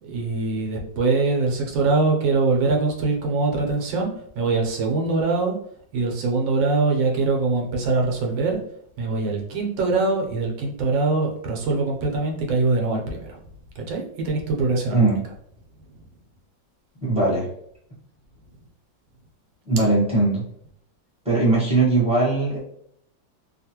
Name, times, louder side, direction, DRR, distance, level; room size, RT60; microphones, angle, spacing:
voice 1, 0.0-5.6 5.9-8.6 9.0-13.4 13.8-15.1, right 3 dB, 80° right, 0 dB, 1.4 m, -23 dB
voice 2, 17.0-17.5 19.6-20.4 21.2-22.6, right 2 dB, 5° right, -8 dB, 0.8 m, -20 dB
3.4 x 2.3 x 2.8 m, 0.69 s
omnidirectional pair, 2.1 m